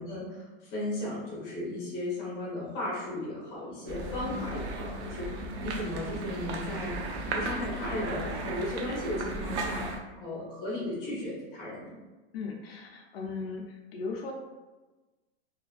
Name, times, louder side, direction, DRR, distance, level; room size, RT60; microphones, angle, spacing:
voice 1, 0.0-7.0 7.3-11.9, left 1 dB, 25° left, -7 dB, 0.8 m, -35 dB
sound 1, 3.9-10.0, right 2 dB, 85° right, 0.6 m, -35 dB
voice 2, 12.3-14.3, left 4 dB, 65° left, 1 dB, 0.5 m, -37 dB
2.7 x 2.4 x 2.4 m, 1.2 s
supercardioid pair, 175°, 32 cm